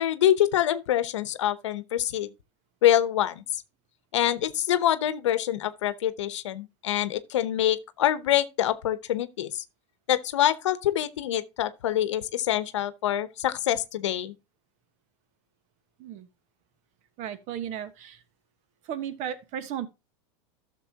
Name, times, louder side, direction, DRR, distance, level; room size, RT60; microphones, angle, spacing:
voice 1, 0.0-2.3 2.8-3.6 4.1-9.6 10.1-14.3, left 11 dB, 90° left, 0.8 m, -25 dB
voice 2, 17.2-18.2 18.8-19.9, right 9 dB, 55° right, 1.3 m, -35 dB
12.5 x 6.7 x 2.8 m
supercardioid pair, 110°, 15 cm